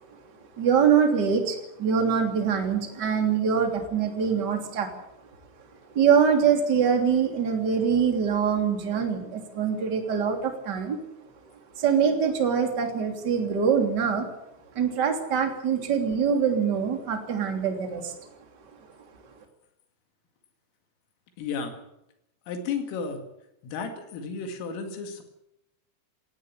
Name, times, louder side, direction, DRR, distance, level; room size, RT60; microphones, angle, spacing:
voice 1, 0.6-4.9 5.9-11.0 11.8-14.3 14.7-18.1, right 7 dB, 25° right, 4 dB, 2.7 m, -24 dB
voice 2, 21.4-21.7 22.5-23.2 23.6-25.2, left 5 dB, 85° left, 5 dB, 4.8 m, -33 dB
18.0 x 15.0 x 9.9 m, 0.82 s
omnidirectional pair, 5.8 m